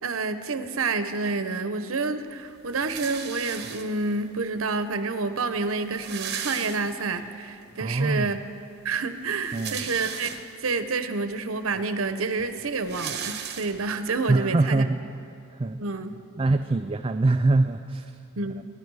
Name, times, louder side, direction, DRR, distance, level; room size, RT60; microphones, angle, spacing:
voice 1, 0.0-8.4 8.8-10.3 10.6-14.8 15.8-16.2 18.4-18.6, right 3 dB, 75° right, 10 dB, 0.9 m, -28 dB
sound 1, 2.7-4.2 5.0-5.1 5.3-5.4 5.7-7.3 7.7-7.8 9.2-10.7 11.4-11.5 11.7-14.1, right 8 dB, 55° right, 1.2 m, -36 dB
voice 2, 7.8-8.3 9.5-9.8 14.3-15.0 15.5-15.8 16.4-18.2, right 2 dB, 25° right, 7 dB, 0.4 m, -23 dB
28.5 x 10.5 x 4.8 m, 2.5 s
head